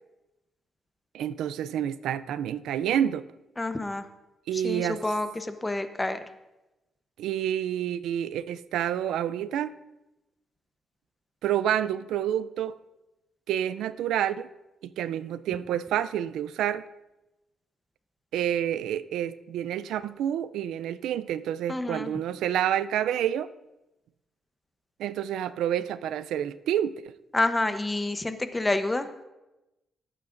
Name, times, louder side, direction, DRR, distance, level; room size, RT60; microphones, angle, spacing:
voice 1, 1.1-3.2 4.5-5.0 7.2-9.7 11.4-12.8 13.5-14.5 15.0-16.8 18.3-23.5 25.0-26.9, right 10 dB, 90° right, 14 dB, 0.3 m, -28 dB
voice 2, 3.6-4.1 4.5-6.2 21.7-22.1 27.3-29.1, left 2 dB, 15° left, 9 dB, 0.8 m, -28 dB
17.5 x 8.8 x 2.6 m, 0.98 s
cardioid pair, 90°, 0 cm